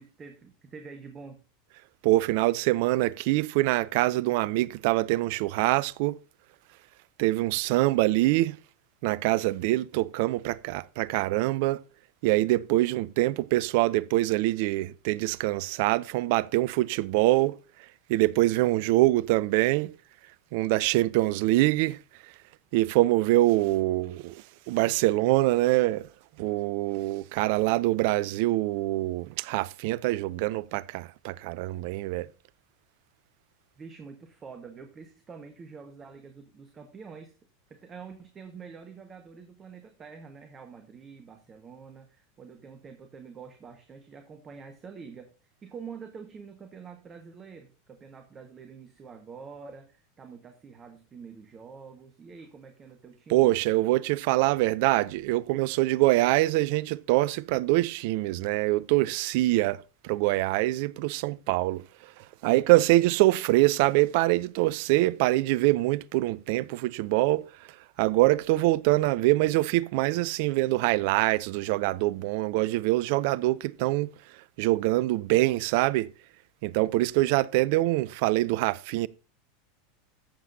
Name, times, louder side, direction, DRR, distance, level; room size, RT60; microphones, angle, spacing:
voice 1, 0.0-1.4 33.8-37.4 37.7-53.5, right 5 dB, 25° right, 1.2 m, -46 dB
voice 2, 2.0-6.2 7.2-8.6 9.0-11.8 12.2-17.6 18.1-19.9 20.5-22.0 22.7-26.1 26.4-32.3 53.3-61.8 62.4-67.5 68.0-74.1 74.6-76.1 76.6-79.1, right 18 dB, 55° right, 0.4 m, -24 dB
14.5 x 7.4 x 2.7 m
figure-of-eight pair, 85°, 0 cm